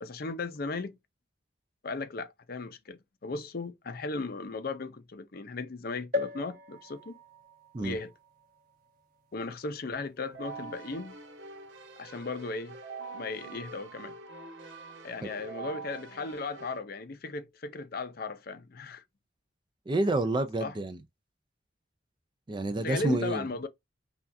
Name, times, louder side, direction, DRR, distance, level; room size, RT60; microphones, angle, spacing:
voice 1, 0.0-1.0 1.8-7.1 7.8-8.1 9.3-11.2 12.0-12.8 13.1-14.1 15.0-19.0 20.6-20.7 22.8-23.7, left 3 dB, 50° left, 0.6 m, -36 dB
sound 1, 6.1-9.8 10.4-10.5 10.7-10.8, left 4 dB, 45° right, 1.3 m, -39 dB
Keyboard (musical), 10.2-16.8, right 4 dB, 85° right, 1.2 m, -45 dB
voice 2, 19.9-21.0 22.5-23.4, right 2 dB, 25° right, 0.4 m, -29 dB
5.6 x 2.4 x 2.6 m
head